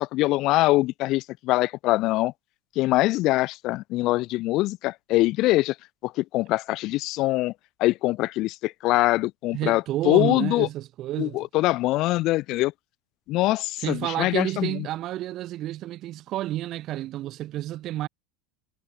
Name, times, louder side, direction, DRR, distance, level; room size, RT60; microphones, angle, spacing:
voice 1, 0.0-2.3 2.8-5.7 6.0-7.5 7.8-10.7 11.2-12.7 13.3-14.9, left 18 dB, 55° left, 0.5 m, -23 dB
voice 2, 9.5-11.4 13.8-18.1, right 14 dB, 45° right, 3.1 m, -30 dB
supercardioid pair, 120°, 0 cm